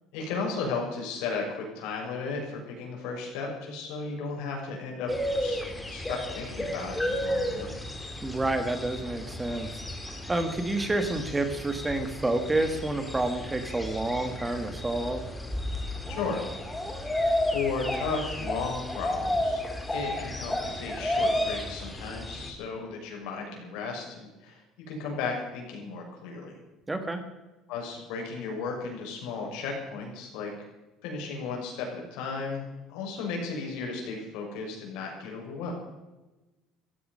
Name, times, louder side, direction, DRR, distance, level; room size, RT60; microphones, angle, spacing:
voice 1, 0.1-5.1 5.4-5.6 5.9-7.7 16.1-16.4 17.4-19.6 19.9-24.6 24.9-26.6 27.7-30.5 31.0-35.7, left 4 dB, 80° left, 1 dB, 6.4 m, -34 dB
sound 1, 5.1-22.5, left 1 dB, 5° left, 2.2 m, -32 dB
voice 2, 8.2-9.8 10.3-15.2 26.9-27.2, right 2 dB, 10° right, 8 dB, 1.7 m, -29 dB
15.5 x 15.0 x 5.6 m, 1.1 s
cardioid pair, 150°, 0 cm